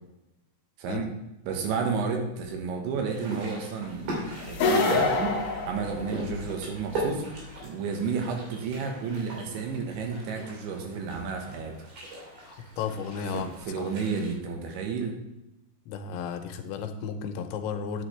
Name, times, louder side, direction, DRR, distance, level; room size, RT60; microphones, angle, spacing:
voice 1, 0.8-1.1 1.5-5.1 5.7-7.3 7.6-11.8 13.3-15.2, right 5 dB, 85° right, 3 dB, 3.6 m, -31 dB
sound 1, 3.1-14.3, right 2 dB, 60° right, 4.4 m, -39 dB
sound 2, 4.5-6.5, left 3 dB, 70° left, 2.1 m, -25 dB
voice 2, 12.5-13.5 13.8-13.9 15.9-18.1, left 6 dB, 85° left, 6 dB, 3.1 m, -34 dB
9.8 x 8.9 x 3.3 m, 0.94 s
omnidirectional pair, 5.2 m